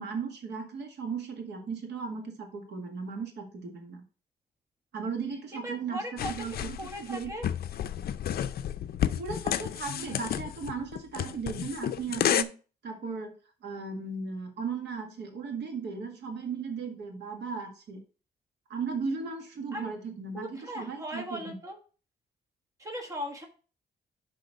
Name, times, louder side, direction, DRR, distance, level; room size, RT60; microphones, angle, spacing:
voice 1, 0.0-4.0 4.9-7.3 9.2-12.5 12.8-13.3 13.6-18.0 18.7-21.6, right 5 dB, 75° right, 3 dB, 1.8 m, -36 dB
voice 2, 5.6-6.3 6.6-7.4 19.7-19.9 20.3-21.8 22.8-23.5, equal, 20° right, 3 dB, 1.5 m, -38 dB
sound 1, 6.2-12.4, left 10 dB, 60° left, 0.5 m, -31 dB
6.5 x 5.5 x 5.1 m, 0.37 s
cardioid pair, 120°, 18 cm